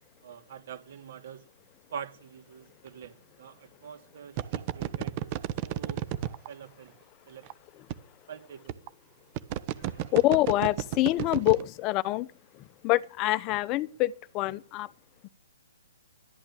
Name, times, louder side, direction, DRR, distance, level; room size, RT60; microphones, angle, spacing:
voice 1, 0.2-1.4 1.9-5.3 5.6-6.0 6.5-6.9 7.3-7.4 8.3-8.8 9.7-10.1, right 8 dB, 50° right, 2.8 m, -45 dB
sound 1, 2.9-3.0 4.4-6.5 7.5-7.6 7.9-8.0 8.7-8.9 9.4-11.6, right 12 dB, 30° right, 0.9 m, -31 dB
voice 2, 10.1-12.3 12.8-14.9, left 17 dB, 25° left, 0.7 m, -25 dB
12.0 x 8.8 x 8.6 m
hypercardioid pair, 145°, 0 cm